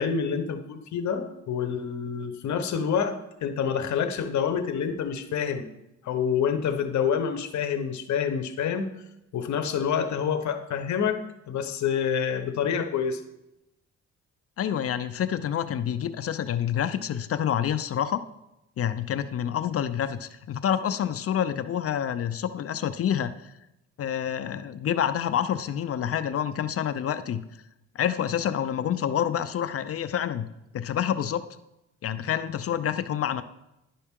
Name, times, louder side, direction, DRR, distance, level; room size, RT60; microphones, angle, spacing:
voice 1, 0.0-5.7 6.0-8.9 9.3-11.2 11.5-13.2, left 7 dB, 70° left, 8 dB, 1.0 m, -27 dB
voice 2, 14.6-18.2 18.8-23.5 24.0-27.4 27.9-30.5 30.7-31.4 32.0-33.4, left 9 dB, 50° left, 12 dB, 0.6 m, -28 dB
11.0 x 5.6 x 3.6 m, 0.89 s
cardioid pair, 90°, 30 cm